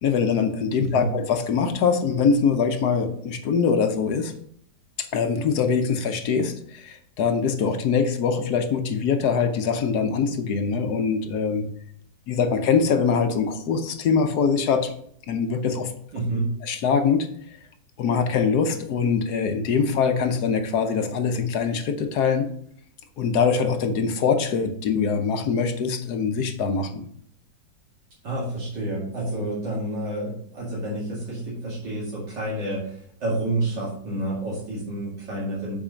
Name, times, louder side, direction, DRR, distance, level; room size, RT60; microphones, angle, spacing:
voice 1, 0.0-4.3 5.0-11.7 12.3-14.9 15.3-15.9 16.6-17.6 18.0-22.5 23.2-27.0, left 5 dB, 65° left, 7 dB, 1.3 m, -23 dB
voice 2, 0.8-1.1 16.1-16.5 28.2-35.8, right 1 dB, 75° right, -7 dB, 2.9 m, -29 dB
7.4 x 4.8 x 5.1 m, 0.65 s
omnidirectional pair, 1.9 m